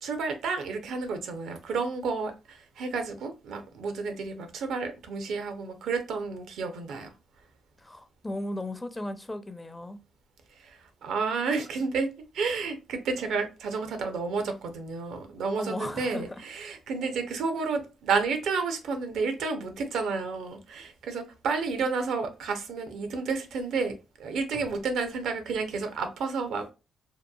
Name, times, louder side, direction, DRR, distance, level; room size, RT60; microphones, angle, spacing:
voice 1, 0.0-7.1 10.5-26.7, right 4 dB, 75° right, 0.5 m, -31 dB
voice 2, 7.8-10.0 15.6-16.2, left 1 dB, 20° left, 0.5 m, -36 dB
2.8 x 2.2 x 2.2 m
supercardioid pair, 55°, 0 cm